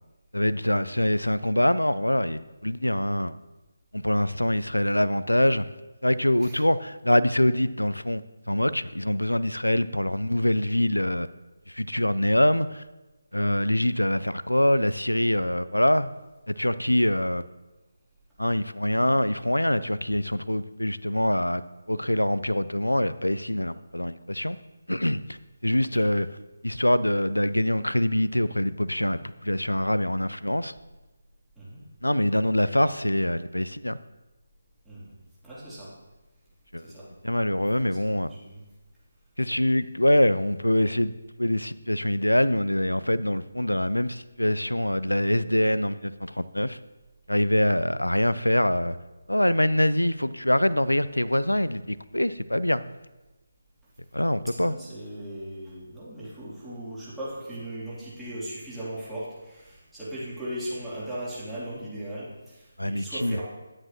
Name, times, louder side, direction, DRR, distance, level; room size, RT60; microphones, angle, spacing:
voice 1, 0.3-3.4 3.9-5.7 6.0-8.2 8.5-11.3 11.7-12.8 13.3-16.1 16.5-17.4 18.4-21.6 21.9-24.6 24.9-25.4 25.6-26.3 26.6-30.7 32.0-34.0 36.7-36.9 37.2-38.3 39.4-41.1 41.4-46.8 47.3-49.0 49.3-52.8 54.1-54.7 62.8-63.4, left 1 dB, 85° left, 15 dB, 0.4 m, -24 dB
voice 2, 35.4-35.9 36.8-37.1 37.7-38.6 47.6-47.9 54.6-63.4, right 1 dB, 5° right, -11 dB, 3.1 m, -38 dB
11.0 x 9.5 x 3.0 m, 1.1 s
figure-of-eight pair, 150°, 0 cm